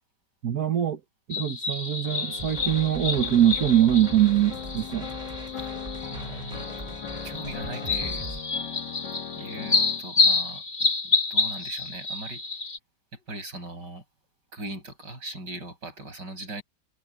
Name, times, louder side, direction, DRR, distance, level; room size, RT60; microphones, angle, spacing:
voice 1, 0.4-1.0 1.3-5.1, right 11 dB, 60° right, 1.7 m, -23 dB
sound 1, 1.3-12.8, left 4 dB, 30° left, 1.5 m, -29 dB
sound 2, 2.0-10.0, left 8 dB, 85° left, 2.2 m, -39 dB
sound 3, 2.4-8.4, right 2 dB, 25° right, 3.1 m, -41 dB
voice 2, 6.1-6.8 7.1-8.2 9.4-12.4 13.1-14.0 14.5-16.6, right 2 dB, 85° right, 7.5 m, -39 dB
omnidirectional pair, 1.8 m